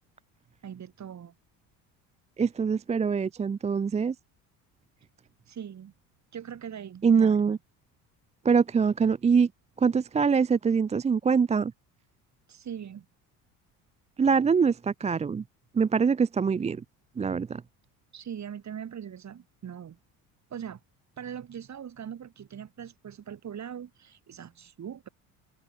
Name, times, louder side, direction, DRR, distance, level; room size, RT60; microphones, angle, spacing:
voice 1, 0.6-1.3 5.5-5.9 6.3-7.4 12.5-13.1 18.1-20.0 20.5-20.8 21.2-25.1, right 8 dB, 40° right, 3.6 m, -41 dB
voice 2, 2.4-4.1 7.0-7.6 8.4-9.5 9.8-11.7 14.2-15.4 15.7-16.8 17.2-17.6, right 6 dB, 15° right, 0.4 m, -24 dB
supercardioid pair, 85°, 41 cm